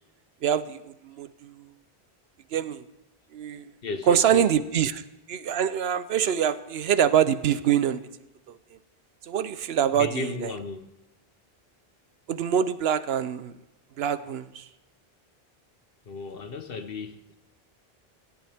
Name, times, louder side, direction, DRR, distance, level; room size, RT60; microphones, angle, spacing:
voice 1, 0.4-1.5 2.5-2.8 3.3-3.6 4.1-5.0 5.3-8.0 8.5-8.6 9.3-10.5 12.3-13.5 14.0-14.7, right 9 dB, 80° right, 0.9 m, -25 dB
voice 2, 3.8-4.6 9.9-10.9 16.1-17.4, left 4 dB, 65° left, 1.2 m, -35 dB
17.5 x 13.5 x 3.5 m
omnidirectional pair, 1.0 m